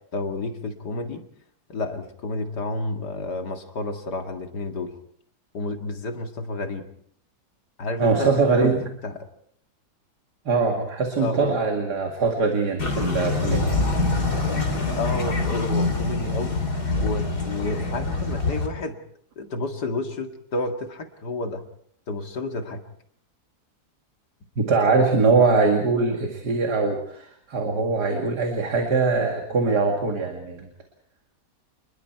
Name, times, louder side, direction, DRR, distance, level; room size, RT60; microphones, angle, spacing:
voice 1, 0.1-1.2 1.7-4.9 5.5-6.8 7.8-8.7 9.0-9.1 11.2-11.5 15.0-16.6 17.0-19.0 19.4-21.6 22.1-22.8, left 2 dB, 90° left, 5 dB, 2.6 m, -30 dB
voice 2, 8.0-8.8 10.5-13.7 24.6-30.7, right 4 dB, 80° right, 3 dB, 2.8 m, -22 dB
sound 1, 12.8-18.7, left 3 dB, 70° left, 4.2 m, -25 dB
28.5 x 21.0 x 4.6 m, 0.66 s
omnidirectional pair, 1.7 m